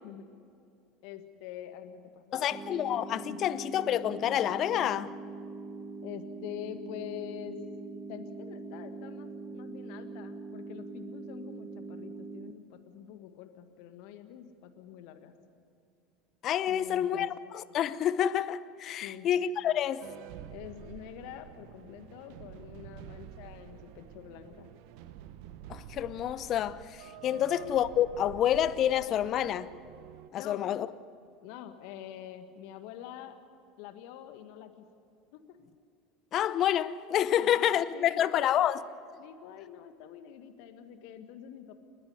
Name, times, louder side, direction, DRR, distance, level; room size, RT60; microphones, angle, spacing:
voice 1, 1.0-2.6 3.3-3.4 6.0-7.6 8.1-15.3 16.7-17.3 19.0-19.3 20.5-24.7 27.3-27.5 30.3-30.6 31.4-33.4 33.8-34.9 35.3-35.6 37.3-38.7 39.2-41.7, left 11 dB, 60° left, 1.7 m, -46 dB
voice 2, 2.3-5.1 16.4-20.1 25.7-29.7 30.3-30.9 36.3-38.8, left 10 dB, 45° left, 0.8 m, -28 dB
sound 1, 2.5-12.5, right 3 dB, 20° right, 1.5 m, -43 dB
sound 2, 20.0-30.3, right 11 dB, 60° right, 0.8 m, -48 dB
29.5 x 11.0 x 9.7 m
hypercardioid pair, 75°, 0 cm